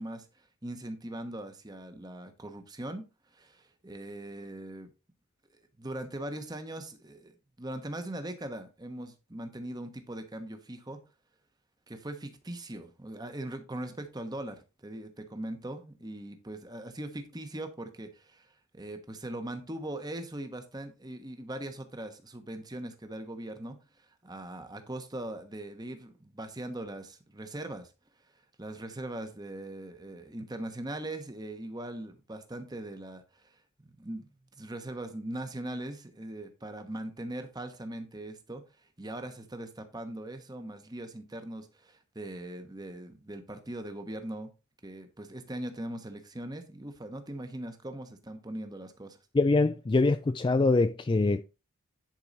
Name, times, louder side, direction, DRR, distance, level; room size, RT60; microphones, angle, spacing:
voice 1, 0.0-3.1 3.3-4.9 5.8-11.0 11.9-27.9 28.6-34.2 34.6-44.5 44.8-49.2, right 1 dB, 20° right, 1.1 m, -40 dB
voice 2, 49.3-51.4, left 3 dB, 20° left, 0.3 m, -24 dB
10.5 x 4.7 x 4.1 m
head